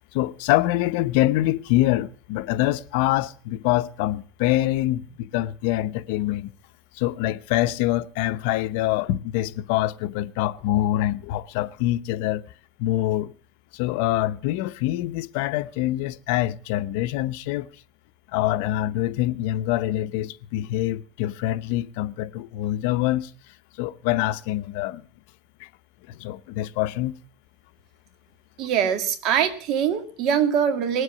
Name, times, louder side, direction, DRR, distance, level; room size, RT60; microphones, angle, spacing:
voice 1, 0.1-6.5 7.0-12.5 12.8-13.3 13.7-17.7 18.3-23.3 23.8-25.0 25.6-25.7 26.1-27.1, left 15 dB, 65° left, 0.7 m, -25 dB
voice 2, 28.6-31.0, right 8 dB, 50° right, 2.1 m, -23 dB
19.5 x 8.0 x 7.3 m
supercardioid pair, 150°, 0 cm